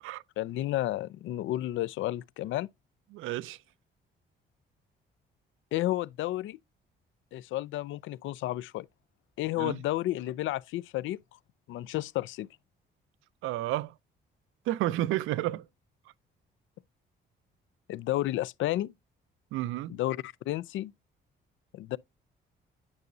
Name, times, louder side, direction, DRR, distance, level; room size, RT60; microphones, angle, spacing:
voice 1, 0.4-2.7 5.7-6.6 7.3-8.9 9.4-11.2 11.7-12.5 17.9-18.9 19.9-20.9 21.7-22.0, left 15 dB, 75° left, 0.4 m, -31 dB
voice 2, 3.1-3.6 9.6-9.8 13.4-13.9 14.7-15.7 19.5-20.0, right 15 dB, 90° right, 0.5 m, -31 dB
9.5 x 5.4 x 2.5 m
cardioid pair, 90°, 20 cm